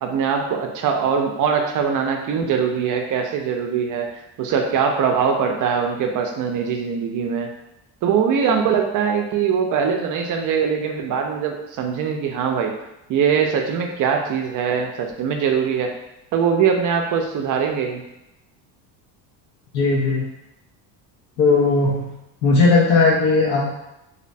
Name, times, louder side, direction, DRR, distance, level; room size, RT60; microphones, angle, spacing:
voice 1, 0.0-4.1 4.4-7.5 8.0-12.7 13.1-15.9 16.3-18.0, right 6 dB, 45° right, 3 dB, 0.5 m, -22 dB
voice 2, 19.7-20.3 21.4-22.1 22.4-23.7, left 3 dB, 70° left, -4 dB, 0.6 m, -17 dB
2.7 x 2.1 x 2.6 m, 0.91 s
cardioid pair, 110°, 44 cm